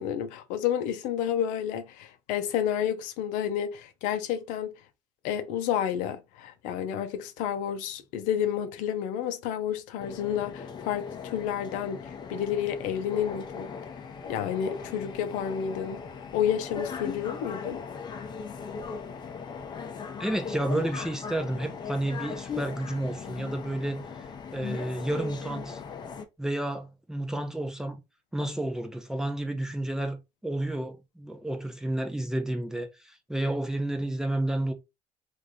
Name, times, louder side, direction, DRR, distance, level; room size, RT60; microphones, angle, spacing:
voice 1, 0.0-4.8 5.2-13.7 14.3-16.0 16.3-17.8, left 9 dB, 90° left, 0.6 m, -30 dB
sound 1, 10.0-26.3, left 6 dB, 35° left, 0.7 m, -39 dB
voice 2, 20.2-24.0 24.5-25.8 26.4-28.0 28.3-30.2 30.4-34.7, right 1 dB, 5° right, 0.6 m, -31 dB
3.0 x 2.6 x 3.6 m
cardioid pair, 125°, 13 cm